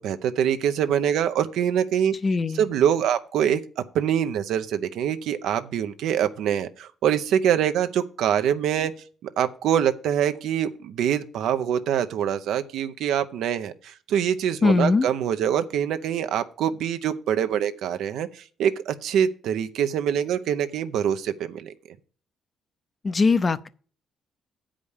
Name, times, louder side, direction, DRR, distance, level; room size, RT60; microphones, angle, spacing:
voice 1, 0.0-2.1 2.6-8.9 9.2-21.7, right 9 dB, 85° right, 0.6 m, -24 dB
voice 2, 2.2-2.7 14.6-15.1 23.0-23.7, left 4 dB, 35° left, 0.6 m, -21 dB
8.2 x 5.1 x 7.2 m
cardioid pair, 90°, 0 cm